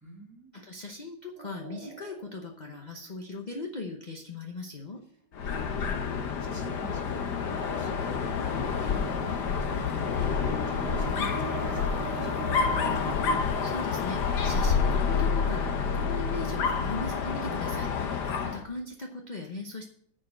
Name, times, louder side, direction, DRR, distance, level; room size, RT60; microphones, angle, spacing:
voice 1, 0.0-0.5 5.4-12.5 18.2-18.5, right 1 dB, 10° right, 0 dB, 2.1 m, -46 dB
voice 2, 0.5-5.0 13.3-19.9, left 2 dB, 35° left, 1 dB, 0.7 m, -39 dB
sound 1, 1.4-3.7 10.2-13.4, right 4 dB, 70° right, 1.7 m, -40 dB
Dog, 5.3-18.6, left 5 dB, 60° left, 1.6 m, -28 dB
10.5 x 5.1 x 7.6 m, 0.65 s
omnidirectional pair, 2.1 m